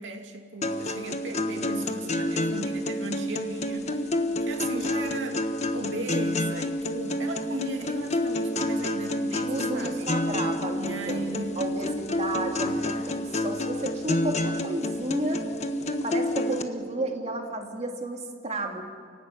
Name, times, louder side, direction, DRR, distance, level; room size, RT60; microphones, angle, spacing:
voice 1, 0.0-4.1 4.4-5.4 5.7-10.1 10.8-12.2 12.7-13.2, right 2 dB, 70° right, 3 dB, 2.7 m, -37 dB
sound 1, 0.6-16.6, left 1 dB, 35° left, 1.3 m, -29 dB
voice 2, 9.4-11.3 11.6-15.4 16.0-18.8, right 2 dB, 35° right, 2 dB, 2.4 m, -32 dB
29.0 x 16.5 x 9.6 m, 2.1 s
head